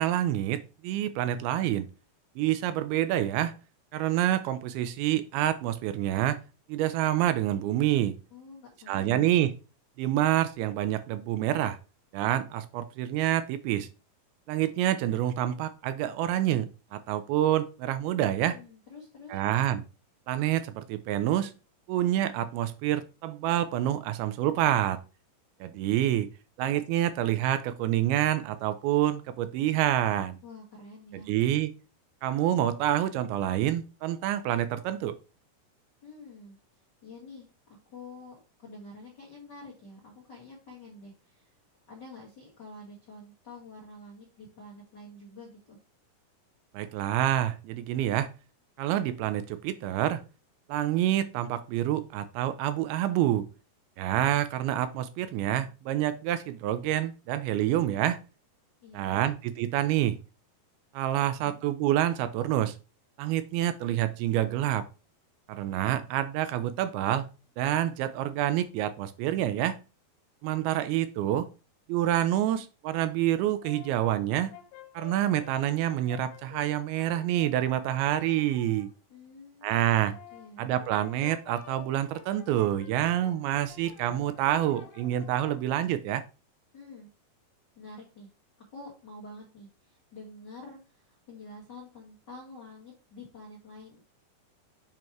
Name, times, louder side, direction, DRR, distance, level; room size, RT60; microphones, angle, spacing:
voice 1, 0.0-1.9 2.4-3.5 3.9-6.4 6.7-8.2 8.9-9.5 10.0-11.8 12.1-13.9 14.5-18.6 19.3-19.8 20.3-21.5 21.9-25.0 25.6-26.3 26.6-30.4 31.1-31.7 32.2-35.2 46.7-48.3 48.8-50.2 50.7-53.5 54.0-58.2 58.9-60.2 60.9-62.8 63.2-64.9 65.5-67.3 67.6-69.8 70.4-71.5 71.9-74.5 74.9-78.9 79.6-80.1 80.6-86.2, right 12 dB, 80° right, 2.3 m, -27 dB
voice 2, 8.3-9.3 18.5-19.4 30.4-31.3 36.0-37.5 37.9-41.6 41.9-45.8 58.8-59.3 61.4-61.6 79.1-80.7 86.7-87.1 87.7-88.3 88.7-94.0, left 2 dB, 60° left, 1.1 m, -48 dB
Brass instrument, 73.3-78.9 79.9-85.7, left 9 dB, 80° left, 2.6 m, -51 dB
7.5 x 3.0 x 4.5 m
omnidirectional pair, 4.6 m